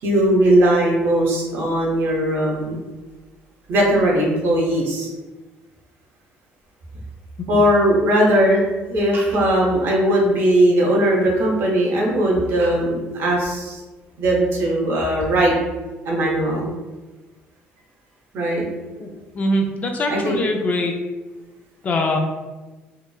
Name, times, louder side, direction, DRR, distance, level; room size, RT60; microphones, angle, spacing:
voice 1, 0.0-2.8 3.7-5.1 7.5-13.8 14.2-15.5 16.0-16.7 18.3-18.7 20.1-20.4, right 1 dB, 60° right, -2 dB, 0.7 m, -19 dB
voice 2, 19.3-20.9 21.8-22.2, left 1 dB, 35° left, 3 dB, 0.4 m, -22 dB
2.7 x 2.0 x 2.2 m, 1.2 s
cardioid pair, 100°, 4 cm